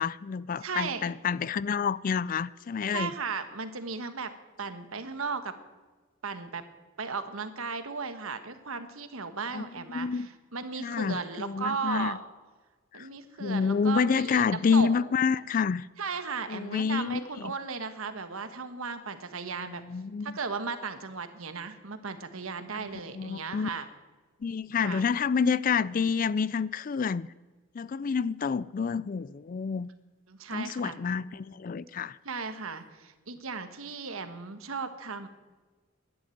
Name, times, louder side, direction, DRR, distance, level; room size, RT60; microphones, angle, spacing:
voice 1, 0.0-3.1 9.5-9.6 9.9-10.3 10.8-12.2 12.9-13.1 13.4-15.9 16.5-17.5 19.8-20.3 22.7-22.9 23.1-23.7 24.4-27.3 27.7-29.9 30.5-32.2, left 5 dB, 40° left, 0.4 m, -28 dB
voice 2, 0.6-1.0 2.9-4.3 4.6-5.5 6.2-6.6 7.0-12.2 12.9-14.4 14.7-14.9 16.0-19.8 20.2-23.9 24.8-25.1 30.3-31.0 32.2-35.3, right 5 dB, 80° right, 1.3 m, -36 dB
11.5 x 10.0 x 9.2 m
head